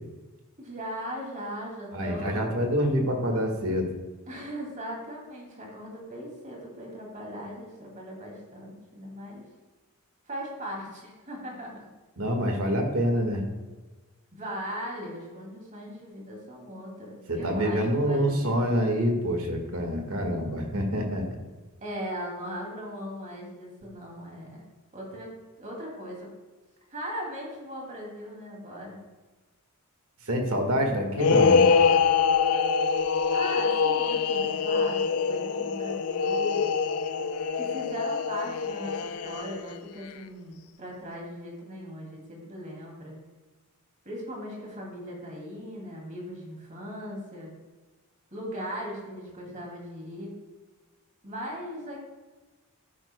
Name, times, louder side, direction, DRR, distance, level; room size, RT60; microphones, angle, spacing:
voice 1, 0.6-2.5 3.3-3.4 4.3-9.4 10.3-11.9 14.3-18.6 21.8-24.6 24.9-26.3 26.9-29.0 33.3-36.8 37.5-43.2 44.0-47.5 48.3-50.4 51.2-52.0, equal, 35° right, -1 dB, 2.6 m, -39 dB
voice 2, 1.9-3.9 12.2-13.4 17.3-21.2 30.3-31.7, equal, 70° right, 3 dB, 1.8 m, -26 dB
sound 1, 31.1-39.7, left 5 dB, 80° left, 0.5 m, -24 dB
12.5 x 9.9 x 2.3 m, 1.3 s
head